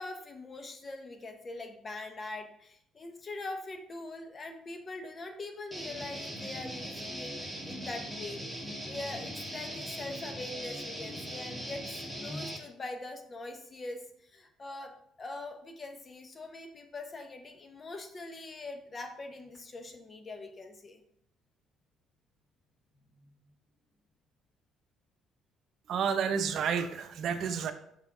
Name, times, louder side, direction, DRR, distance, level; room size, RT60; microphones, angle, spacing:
voice 1, 0.0-21.0 23.0-23.3, left 2 dB, 35° left, 6 dB, 1.1 m, -43 dB
Guitar, 5.7-12.6, equal, 5° left, 1.6 m, -40 dB
voice 2, 25.9-27.7, right 6 dB, 60° right, 8 dB, 0.7 m, -30 dB
5.8 x 5.6 x 3.8 m, 0.72 s
supercardioid pair, 85°, 0 cm